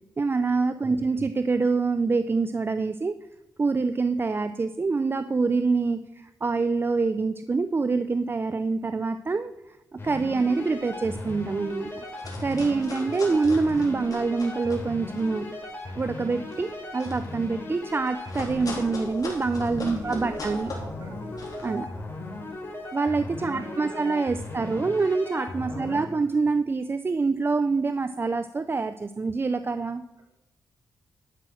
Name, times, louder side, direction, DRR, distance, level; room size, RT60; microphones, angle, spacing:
voice 1, 0.2-3.1 3.6-12.0 12.4-15.5 16.0-20.7 21.6-21.9 22.9-30.1, right 4 dB, 30° right, 11 dB, 0.5 m, -26 dB
voice 2, 0.7-1.3 13.0-13.4 19.8-21.8 23.4-24.9 25.7-26.4, right 1 dB, 55° right, 0 dB, 3.8 m, -44 dB
sound 1, 10.0-26.0, left 2 dB, 35° left, 3.8 m, -37 dB
sound 2, 10.4-10.5 10.9-11.0 11.2-11.6 12.0-14.9 15.2-21.7, left 3 dB, 55° left, 3.5 m, -41 dB
12.0 x 6.1 x 6.5 m, 0.89 s
cardioid pair, 70°, 7 cm